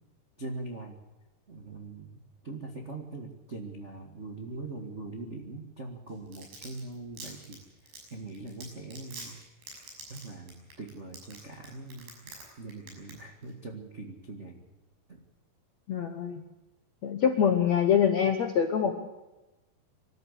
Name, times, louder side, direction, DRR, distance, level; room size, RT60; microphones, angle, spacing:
voice 1, 0.4-1.0 1.5-7.6 8.1-9.4 10.1-14.7 15.1-15.2, right 3 dB, 55° right, 1 dB, 0.7 m, -42 dB
Domestic sounds home sounds, 6.1-12.4 12.7-13.1 13.4-13.5, right 2 dB, 75° right, 8.4 m, -44 dB
voice 2, 15.9-16.4 17.0-18.9, left 8 dB, 70° left, 5 dB, 1.7 m, -24 dB
25.0 x 13.5 x 8.3 m, 1.1 s
omnidirectional pair, 4.9 m